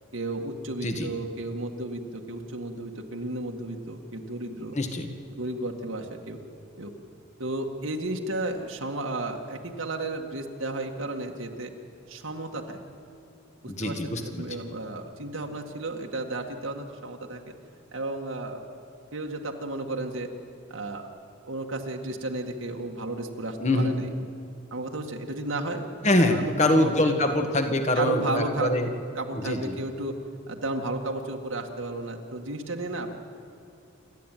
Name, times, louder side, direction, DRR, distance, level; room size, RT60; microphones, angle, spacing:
voice 1, 0.1-4.7 5.3-6.4 6.8-6.9 7.4-11.7 12.1-12.8 13.6-17.5 17.9-18.6 19.1-20.3 20.7-21.1 21.4-24.1 24.7-25.9 26.2-27.2 28.0-28.7 29.2-30.2 30.5-33.2, right 2 dB, 85° right, 2 dB, 1.9 m, -33 dB
voice 2, 4.7-5.1 13.7-14.5 23.6-23.9 26.0-28.9 29.3-29.8, left 1 dB, 35° left, 5 dB, 1.7 m, -24 dB
28.0 x 12.5 x 9.3 m, 2.5 s
head